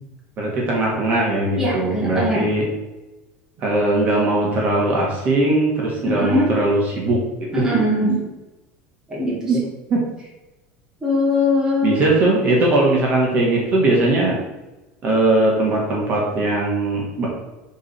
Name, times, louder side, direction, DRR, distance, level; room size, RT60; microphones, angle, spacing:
voice 1, 0.4-2.6 3.6-7.2 7.5-7.8 9.5-9.6 9.9-10.0 11.8-14.4 15.0-17.3, right 2 dB, 30° right, -3 dB, 1.7 m, -19 dB
voice 2, 1.6-2.5 6.0-6.5 7.5-8.2 9.1-9.4 11.0-12.0, left 1 dB, 10° right, -5 dB, 1.8 m, -21 dB
7.1 x 3.9 x 5.6 m, 1.1 s
cardioid pair, 170°, 5 cm